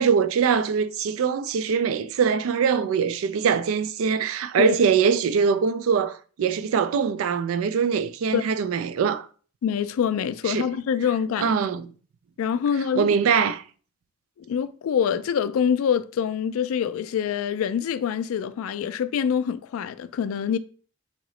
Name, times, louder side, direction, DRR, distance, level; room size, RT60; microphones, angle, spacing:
voice 1, 0.0-9.3 10.5-10.7 11.4-11.9 13.0-13.6, right 6 dB, 80° right, 0.3 m, -23 dB
voice 2, 9.6-11.5 12.4-13.1 14.5-20.6, left 8 dB, 85° left, 0.3 m, -25 dB
3.7 x 2.9 x 3.1 m
head